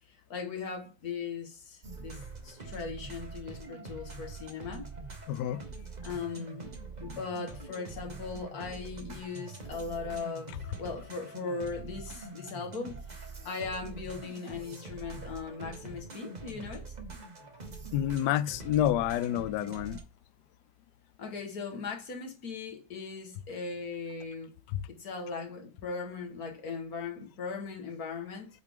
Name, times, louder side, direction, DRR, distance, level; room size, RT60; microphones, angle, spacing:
voice 1, 0.1-4.9 6.0-6.7 7.0-10.5 10.8-16.8 21.2-24.5 24.9-28.5, left 4 dB, 50° left, 1.9 m, -39 dB
sound 1, 1.8-20.0, right 3 dB, 30° right, 0.9 m, -44 dB
voice 2, 5.3-5.6 17.9-20.0 24.7-24.8, left 12 dB, 75° left, 1.0 m, -28 dB
8.3 x 4.4 x 3.6 m
omnidirectional pair, 2.2 m